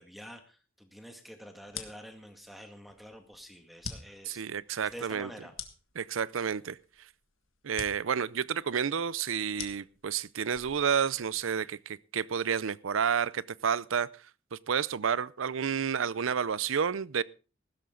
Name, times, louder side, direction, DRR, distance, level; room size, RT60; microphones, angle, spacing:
voice 1, 0.0-4.5 4.8-5.5, equal, ahead, 2.0 m, -48 dB
sound 1, 1.6-11.5, left 7 dB, 90° left, 1.7 m, -47 dB
voice 2, 4.3-5.3 6.0-6.8 7.6-14.1 14.5-17.2, right 7 dB, 80° right, 0.5 m, -30 dB
15.5 x 12.5 x 3.8 m
head